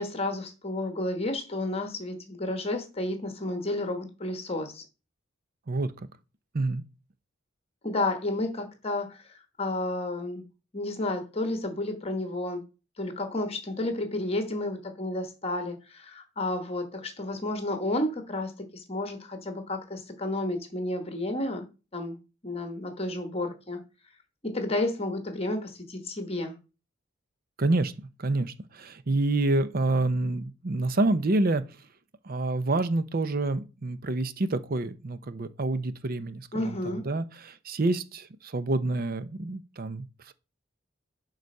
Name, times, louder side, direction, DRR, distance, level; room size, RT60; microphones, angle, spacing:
voice 1, 0.0-4.8 7.8-10.4 10.7-12.6 13.0-21.6 21.9-22.2 22.4-23.8 24.4-26.5 36.5-37.0, left 2 dB, 30° left, 1.2 m, -31 dB
voice 2, 5.7-6.1 6.5-6.8 27.6-27.9 28.2-31.6 32.2-40.3, right 2 dB, 45° right, 0.6 m, -28 dB
11.0 x 4.0 x 5.4 m
head